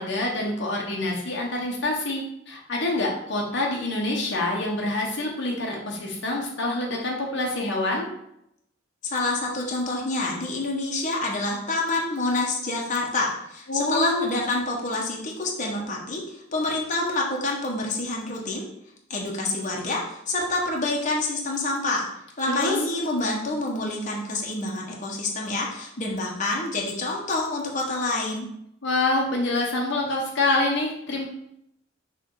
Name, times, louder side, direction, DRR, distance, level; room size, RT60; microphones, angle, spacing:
voice 1, 0.0-8.1 13.7-14.3 22.5-22.7 28.8-31.2, left 2 dB, 65° left, -1 dB, 1.1 m, -26 dB
voice 2, 9.0-18.6 19.1-22.1 22.4-28.5, left 2 dB, 40° left, -1 dB, 1.1 m, -27 dB
6.3 x 3.4 x 4.7 m, 0.77 s
head